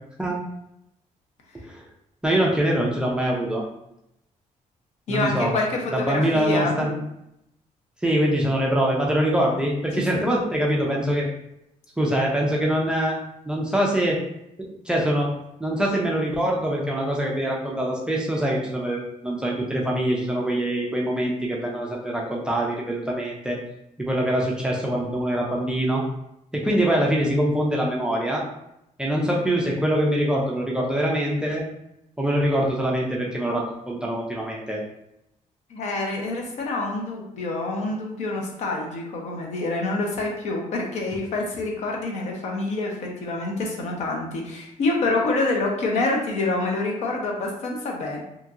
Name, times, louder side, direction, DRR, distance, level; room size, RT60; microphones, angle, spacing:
voice 1, 2.2-3.6 5.1-5.5 5.9-6.9 8.0-11.3 12.0-13.2 13.5-14.2 14.9-15.3 15.6-23.6 24.0-26.0 26.5-28.4 29.0-31.6 32.2-34.8, right 1 dB, 5° right, -3 dB, 0.3 m, -24 dB
voice 2, 5.1-6.7 10.1-10.4 35.7-48.2, left 2 dB, 65° left, 0 dB, 0.6 m, -27 dB
2.9 x 2.6 x 2.4 m, 0.83 s
cardioid pair, 180°, 13 cm